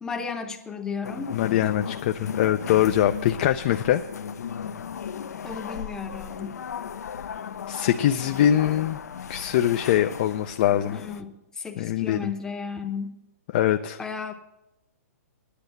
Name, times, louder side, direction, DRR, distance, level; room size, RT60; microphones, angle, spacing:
voice 1, 0.0-1.3 5.4-6.5 10.9-13.2 14.0-14.3, left 5 dB, 5° left, 4 dB, 0.8 m, -34 dB
sound 1, 1.0-11.2, left 7 dB, 80° left, 0.7 m, -36 dB
voice 2, 1.3-4.0 7.7-9.0 9.3-11.0 11.8-12.3 13.5-14.0, left 11 dB, 35° left, 7 dB, 0.4 m, -23 dB
9.9 x 8.2 x 9.0 m, 0.91 s
hypercardioid pair, 160°, 9 cm